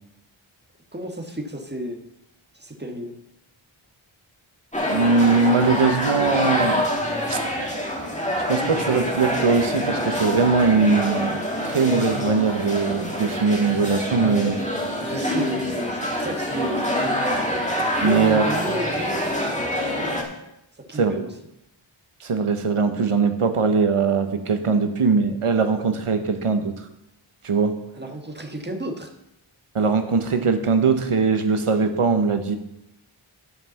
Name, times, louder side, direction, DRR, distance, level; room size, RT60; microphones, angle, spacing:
voice 1, 0.9-2.0 2.5-3.1 14.2-14.5 15.0-17.2 18.0-20.2 20.8-21.3 27.9-29.1, right 1 dB, 20° right, 4 dB, 1.4 m, -32 dB
sound 1, 4.7-20.2, equal, 15° left, 2.1 m, -26 dB
voice 2, 4.9-6.8 7.3-7.4 8.4-14.6 18.0-18.5 20.9-21.2 22.2-26.9 27.4-27.7 29.7-32.6, right 4 dB, 90° right, 7 dB, 1.0 m, -21 dB
10.5 x 5.6 x 7.0 m, 0.84 s
wide cardioid pair, 55°, 50 cm